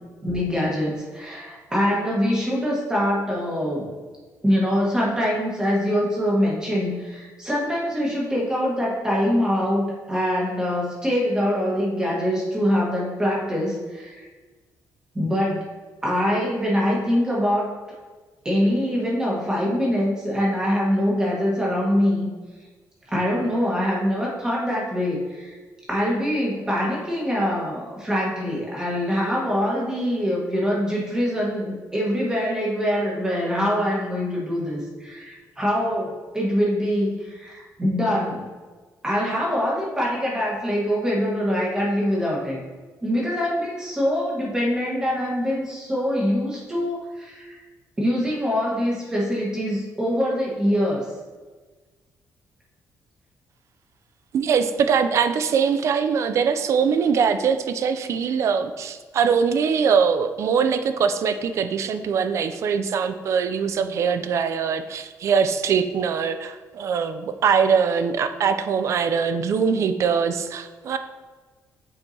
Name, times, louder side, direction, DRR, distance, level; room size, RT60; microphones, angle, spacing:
voice 1, 0.2-3.9 4.4-14.3 15.1-15.6 16.0-17.7 18.4-22.3 23.1-25.5 25.9-38.5 39.0-42.6 43.0-47.6 48.0-51.0, equal, 10° right, -4 dB, 1.4 m, -24 dB
voice 2, 54.3-71.0, right 6 dB, 50° right, 10 dB, 0.4 m, -22 dB
8.0 x 4.5 x 2.8 m, 1.3 s
cardioid pair, 170°, 6 cm